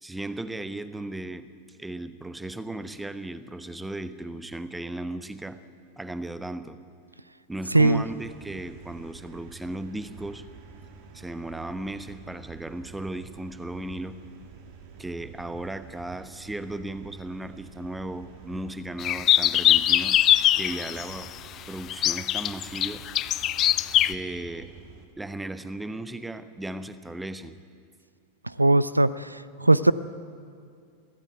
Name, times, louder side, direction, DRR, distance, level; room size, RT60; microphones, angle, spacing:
voice 1, 0.0-1.5 1.8-5.6 6.0-6.8 7.5-10.4 11.1-14.2 15.0-20.2 20.6-21.3 21.7-23.0 24.0-24.7 25.2-27.6, right 1 dB, 5° right, 12 dB, 1.0 m, -36 dB
voice 2, 7.7-8.0 28.6-29.9, right 2 dB, 85° right, 17 dB, 0.5 m, -20 dB
sound 1, 7.8-25.1, right 5 dB, 45° right, 2.1 m, -48 dB
sound 2, 19.0-21.1 21.9-24.1, left 12 dB, 30° left, 0.5 m, -22 dB
23.0 x 15.5 x 9.2 m, 2.3 s
figure-of-eight pair, 90°, 0 cm